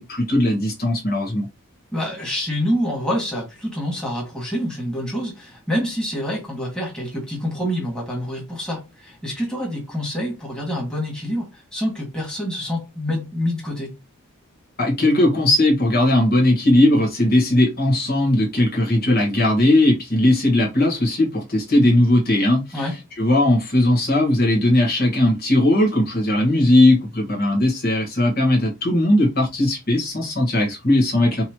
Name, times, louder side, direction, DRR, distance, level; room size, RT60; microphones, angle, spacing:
voice 1, 0.0-1.5 14.8-31.4, left 1 dB, 45° left, 1.6 m, -18 dB
voice 2, 1.9-13.9 22.7-22.9, equal, 5° left, 2.0 m, -27 dB
5.5 x 3.0 x 3.0 m
head